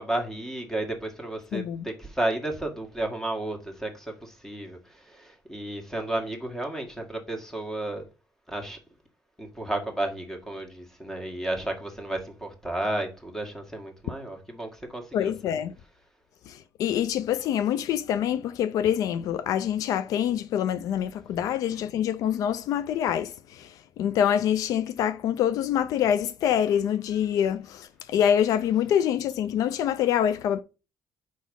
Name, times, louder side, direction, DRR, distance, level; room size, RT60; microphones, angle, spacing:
voice 1, 0.0-8.0 8.5-8.8 9.4-15.5, right 1 dB, 5° left, 1.8 m, -32 dB
voice 2, 1.5-1.9 15.1-15.7 16.5-30.6, left 9 dB, 75° left, 0.4 m, -25 dB
4.8 x 4.1 x 5.4 m
cardioid pair, 110°, 6 cm